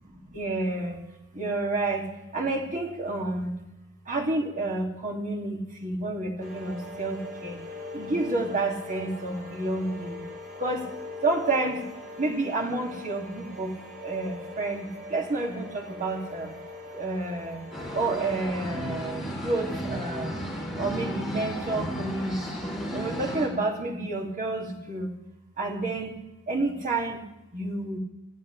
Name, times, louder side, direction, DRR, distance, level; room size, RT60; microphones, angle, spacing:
voice 1, 0.3-1.0 1.3-2.0 2.3-3.5 4.1-7.6 7.9-10.2 10.6-10.8 11.2-11.8 12.2-13.7 14.0-16.5 17.0-17.6 17.9-20.3 20.8-22.4 22.9-25.1 25.6-26.1 26.5-27.2 27.5-28.0, right 2 dB, 35° right, -1 dB, 2.6 m, -29 dB
sound 1, 6.4-18.4, left 2 dB, 65° right, 3.9 m, -42 dB
sound 2, 17.7-23.5, equal, ahead, 4.0 m, -34 dB
26.5 x 14.5 x 3.4 m, 0.91 s
head